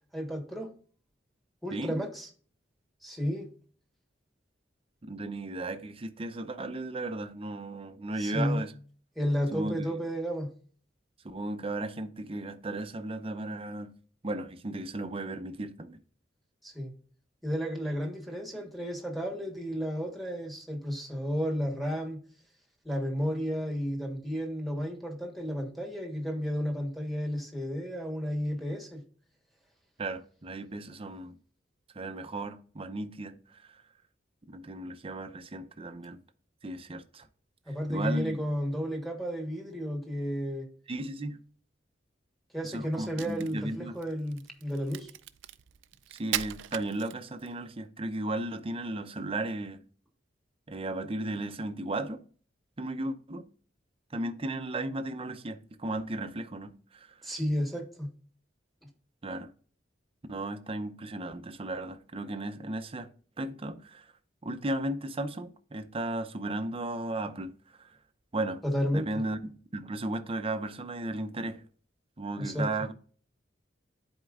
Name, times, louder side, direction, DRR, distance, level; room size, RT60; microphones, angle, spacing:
voice 1, 0.1-0.7 1.6-2.3 3.0-3.5 8.2-8.6 9.2-10.5 16.6-16.9 17.4-22.2 22.8-29.0 37.7-40.7 42.5-45.1 57.2-58.1 58.8-58.9 68.6-69.2 72.4-72.7, equal, ahead, 1.3 m, -32 dB
voice 2, 1.7-2.0 5.0-8.7 9.5-10.0 11.2-13.9 14.2-16.0 30.0-31.4 31.9-33.8 34.5-36.2 36.6-37.3 37.7-38.4 40.9-41.4 42.6-44.0 46.1-49.8 50.7-52.2 52.8-53.5 54.1-57.2 59.2-59.5 60.3-63.1 63.4-64.1 64.4-68.0 68.3-68.6 68.9-71.6 72.2-72.9, right 2 dB, 30° right, 0.6 m, -35 dB
Crack, 43.0-47.6, right 12 dB, 80° right, 0.4 m, -39 dB
11.0 x 4.4 x 2.4 m
head